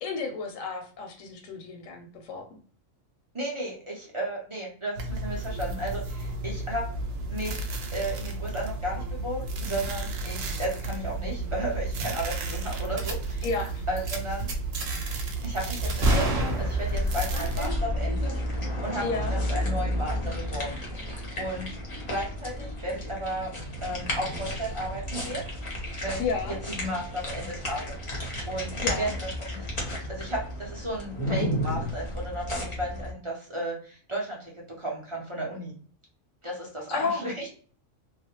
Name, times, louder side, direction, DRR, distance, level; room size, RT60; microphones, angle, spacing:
voice 1, 0.0-2.5 13.4-13.8 19.0-19.3 26.2-26.6 28.8-29.1 36.9-37.3, left 4 dB, 85° left, 3 dB, 1.0 m, -31 dB
voice 2, 3.3-6.8 7.3-13.5 13.9-14.5 15.4-21.7 22.1-23.5 23.8-25.5 26.0-26.2 26.7-27.9 28.2-29.6 30.1-34.5 34.8-35.7 36.4-37.5, right 1 dB, 45° right, -3 dB, 0.4 m, -34 dB
sound 1, 5.0-17.7, right 3 dB, 90° right, 1.0 m, -33 dB
sound 2, 13.0-13.1 13.4-13.7 14.0-14.2 14.5-15.3 15.7-17.1, right 1 dB, 60° right, 0.8 m, -28 dB
sound 3, 15.8-33.1, left 1 dB, 35° left, 0.6 m, -32 dB
2.3 x 2.0 x 2.9 m, 0.43 s
omnidirectional pair, 1.3 m